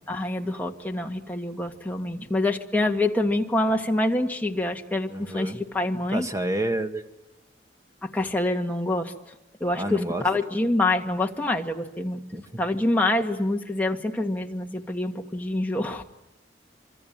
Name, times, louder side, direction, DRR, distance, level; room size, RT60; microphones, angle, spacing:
voice 1, 0.1-6.3 8.0-9.3 9.6-12.2 12.6-16.0, left 2 dB, 10° left, 2 dB, 1.7 m, -26 dB
voice 2, 5.1-5.6 6.1-7.0 9.7-10.2 12.3-12.4, right 1 dB, 20° right, 7 dB, 1.6 m, -29 dB
26.0 x 24.5 x 8.9 m, 0.99 s
head